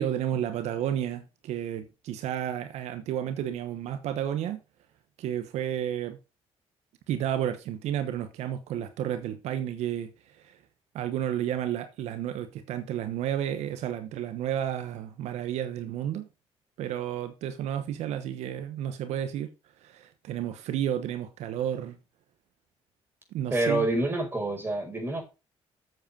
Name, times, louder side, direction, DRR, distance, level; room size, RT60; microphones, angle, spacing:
voice 1, 0.0-4.6 5.2-6.2 7.1-10.1 10.4-10.6 10.9-16.3 16.8-19.5 19.8-22.0 23.3-23.9, right 10 dB, 85° right, 1.0 m, -31 dB
voice 2, 23.5-25.2, right 2 dB, 20° right, 5.0 m, -27 dB
7.8 x 7.7 x 5.2 m
cardioid pair, 95°, 11 cm